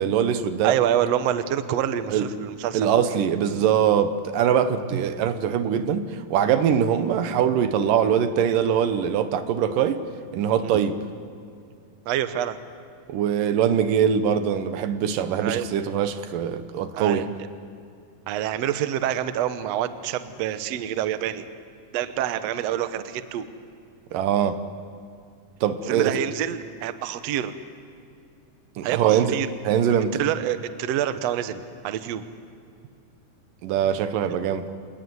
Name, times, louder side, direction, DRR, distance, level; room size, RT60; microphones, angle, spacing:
voice 1, 0.0-0.8 2.1-2.3 2.7-10.0 10.3-11.0 13.1-17.3 24.1-24.6 25.6-26.2 28.8-29.4 29.6-30.2 33.6-34.7, right 8 dB, 85° right, 2.7 m, -22 dB
voice 2, 0.6-2.9 10.6-10.8 12.0-12.6 15.4-15.7 16.9-17.3 18.3-21.5 21.9-23.5 25.9-27.5 28.8-29.5 30.2-32.2, right 11 dB, 65° right, 1.8 m, -27 dB
27.0 x 19.0 x 9.5 m
omnidirectional pair, 3.8 m